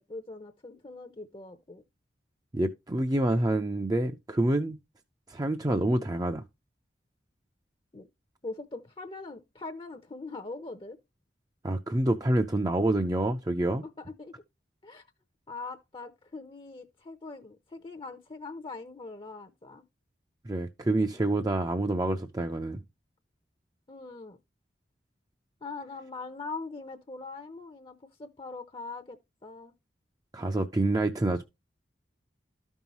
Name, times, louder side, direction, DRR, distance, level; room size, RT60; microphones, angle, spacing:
voice 1, 0.0-1.8 7.9-8.1 8.4-11.0 13.8-14.4 14.8-15.0 15.5-19.8 23.9-24.4 25.6-29.7, left 3 dB, 30° left, 0.7 m, -42 dB
voice 2, 2.5-4.8 5.3-6.4 11.6-13.8 20.5-22.8 30.3-31.4, right 1 dB, 20° right, 0.5 m, -27 dB
13.0 x 5.5 x 3.0 m
head